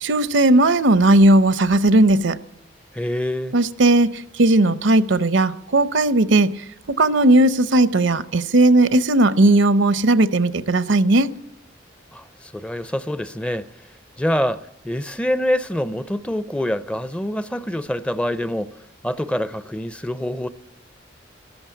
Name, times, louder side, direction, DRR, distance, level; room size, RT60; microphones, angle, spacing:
voice 1, 0.0-2.4 3.5-6.5 6.9-11.3, right 2 dB, 75° right, 0.7 m, -16 dB
voice 2, 2.9-3.5 12.1-13.8 14.2-18.8 19.0-20.5, equal, 5° left, 0.5 m, -25 dB
13.0 x 13.0 x 7.1 m
head